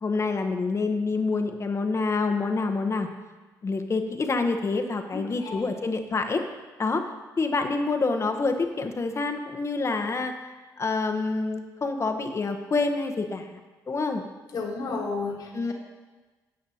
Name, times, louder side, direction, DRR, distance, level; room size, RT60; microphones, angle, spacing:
voice 1, 0.0-3.1 3.6-6.4 6.8-7.0 7.4-10.3 10.8-13.6 13.9-14.2 15.5-15.7, left 3 dB, 35° left, 5 dB, 1.0 m, -27 dB
voice 2, 5.1-5.6 14.5-15.7, left 4 dB, 60° left, -1 dB, 1.6 m, -32 dB
11.5 x 7.6 x 2.8 m, 1.3 s
supercardioid pair, 65°, 8 cm